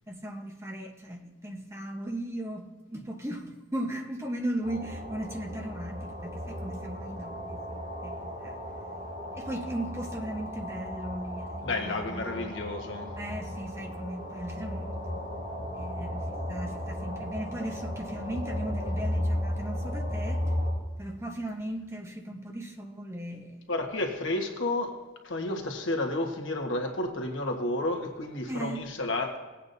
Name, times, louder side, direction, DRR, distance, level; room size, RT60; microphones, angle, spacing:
voice 1, 0.1-8.6 9.4-12.5 13.2-15.3 15.8-20.6 21.0-23.6 28.5-28.8, right 1 dB, 15° right, 2 dB, 1.0 m, -37 dB
sound 1, 4.6-20.7, equal, 40° right, 2.6 m, -35 dB
voice 2, 11.6-13.1 23.7-25.0 25.2-29.4, left 2 dB, 70° left, 3 dB, 1.4 m, -31 dB
17.0 x 8.4 x 2.7 m, 1.3 s
head